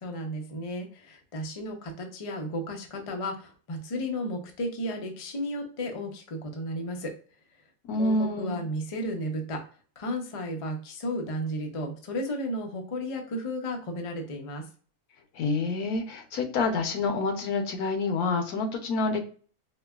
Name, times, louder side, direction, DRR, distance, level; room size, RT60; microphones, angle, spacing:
voice 1, 0.0-7.1 8.0-9.6 10.0-14.7, equal, 50° left, 3 dB, 0.4 m, -33 dB
voice 2, 7.9-8.6 15.3-19.2, left 3 dB, 80° left, 4 dB, 1.2 m, -27 dB
4.6 x 2.2 x 2.3 m, 0.41 s
omnidirectional pair, 1.6 m